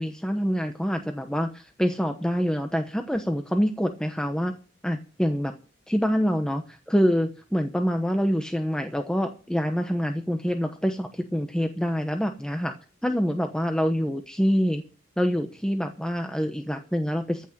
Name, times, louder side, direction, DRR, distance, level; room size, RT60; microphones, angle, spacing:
voice 1, 0.0-4.5 4.8-5.5 5.9-12.7 13.0-14.8 15.2-17.5, equal, 5° left, 5 dB, 1.0 m, -26 dB
14.5 x 6.2 x 9.2 m, 0.36 s
head